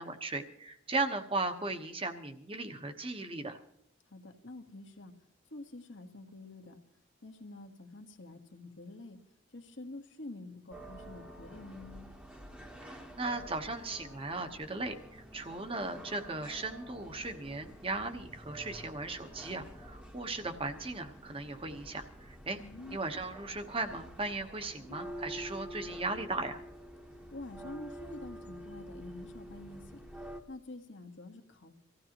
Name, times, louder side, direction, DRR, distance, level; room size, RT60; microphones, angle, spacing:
voice 1, 0.0-3.6 13.2-22.6 22.9-26.6, right 3 dB, 30° right, 6 dB, 1.1 m, -37 dB
voice 2, 4.1-5.1 5.5-6.8 7.2-9.2 9.5-12.1 22.6-23.0 24.8-25.0 27.3-30.0 30.5-31.7, left 2 dB, 75° left, 5 dB, 1.4 m, -47 dB
sound 1, 10.7-30.4, equal, 5° right, 1.1 m, -48 dB
25.0 x 15.5 x 3.0 m, 0.73 s
head